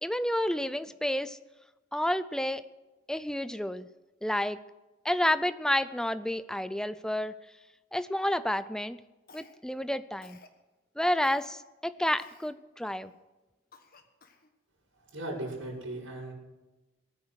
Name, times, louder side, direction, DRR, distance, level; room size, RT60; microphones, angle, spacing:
voice 1, 0.0-1.4 1.9-2.6 3.1-3.9 4.2-4.6 5.0-7.3 7.9-9.0 9.3-10.4 11.0-13.1, left 1 dB, 5° left, 13 dB, 0.4 m, -30 dB
Cough, 9.3-9.8 10.2-10.6 11.2-11.5 12.2-12.5 13.1-13.2 13.7-14.5, left 4 dB, 45° left, 1.5 m, -55 dB
voice 2, 14.9-16.3, right 1 dB, 80° right, -11 dB, 5.9 m, -38 dB
20.0 x 9.6 x 6.4 m, 1.1 s
head